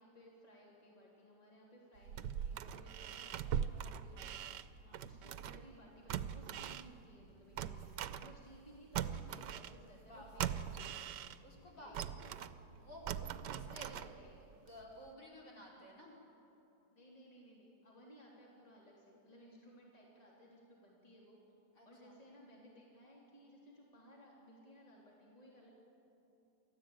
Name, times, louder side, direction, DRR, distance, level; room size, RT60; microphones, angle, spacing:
voice 1, 0.0-4.6 5.0-11.2 11.8-12.4 13.5-14.5 16.9-21.4 21.8-25.7, equal, 20° left, -4 dB, 3.6 m, -60 dB
sound 1, 2.0-5.7 6.1-8.7 8.9-11.6 11.9-14.5 14.8-14.9, right 9 dB, 85° right, 1.3 m, -41 dB
voice 2, 10.0-10.6 11.4-12.5 12.8-13.9 14.5-16.1 21.8-22.1, equal, 50° left, -4 dB, 4.8 m, -54 dB
sound 2, 12.5-14.7, right 4 dB, 30° right, 2.8 m, -65 dB
29.0 x 13.5 x 8.9 m, 2.9 s
omnidirectional pair, 1.8 m